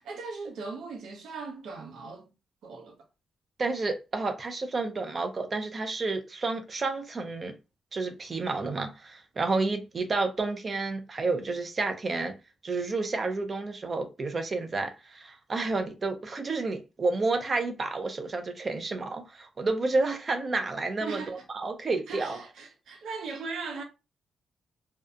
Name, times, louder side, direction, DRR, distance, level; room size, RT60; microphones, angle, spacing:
voice 1, 0.0-2.3 2.6-3.0 21.0-21.4 22.1-23.8, right 4 dB, 80° right, 0.7 m, -38 dB
voice 2, 3.6-7.5 7.9-12.4 12.6-22.4, right 3 dB, 30° right, 0.4 m, -30 dB
2.6 x 2.2 x 2.4 m
wide cardioid pair, 175°, 0 cm